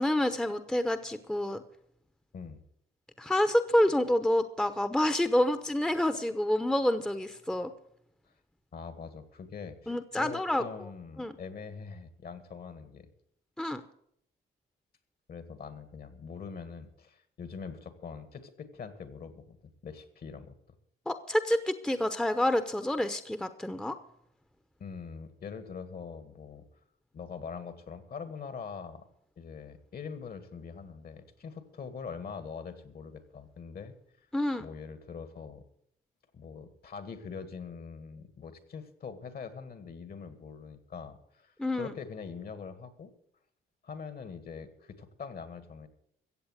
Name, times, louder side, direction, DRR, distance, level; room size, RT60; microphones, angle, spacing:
voice 1, 0.0-1.6 3.2-7.7 9.9-10.6 11.2-11.3 13.6-13.8 21.1-24.0 34.3-34.7 41.6-41.9, left 1 dB, 5° left, 10 dB, 0.9 m, -28 dB
voice 2, 8.7-13.1 15.3-19.6 19.8-20.5 24.8-26.6 27.1-29.1 29.4-33.9 34.6-35.6 36.3-43.1 43.8-45.9, left 5 dB, 50° left, 11 dB, 1.8 m, -43 dB
15.0 x 7.9 x 7.9 m, 0.70 s
cardioid pair, 90°, 20 cm